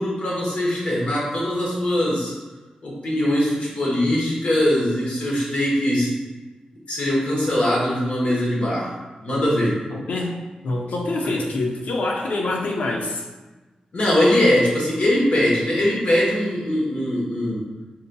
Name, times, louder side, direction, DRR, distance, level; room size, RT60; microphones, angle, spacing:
voice 1, 0.0-2.3 2.8-6.1 6.9-8.9 9.2-9.8 11.2-11.3 13.9-17.6, left 1 dB, 55° left, -5 dB, 1.0 m, -21 dB
voice 2, 9.9-13.2, left 2 dB, 70° left, 0 dB, 0.5 m, -26 dB
3.8 x 2.7 x 2.2 m, 1.2 s
wide cardioid pair, 125°, 3 cm